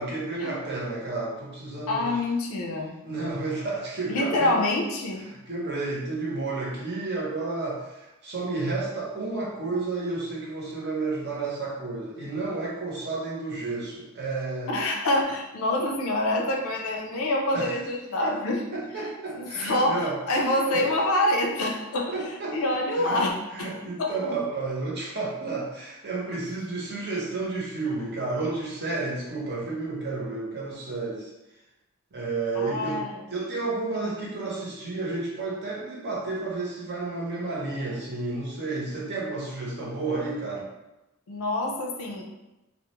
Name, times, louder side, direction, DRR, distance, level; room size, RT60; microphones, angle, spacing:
voice 1, 0.0-2.2 3.0-4.6 5.2-14.7 17.5-17.8 18.2-18.3 18.7-20.2 20.7-20.9 22.1-22.6 23.0-23.2 23.5-31.3 32.1-33.0 33.3-40.7, right 3 dB, 50° right, -4 dB, 0.7 m, -31 dB
voice 2, 1.9-2.9 4.1-5.2 14.7-18.6 19.3-22.2 22.5-23.3 23.6-23.7 24.0-24.1 32.5-33.2 41.3-42.2, left 1 dB, 75° left, 1 dB, 0.4 m, -26 dB
2.3 x 2.1 x 2.9 m, 0.98 s
head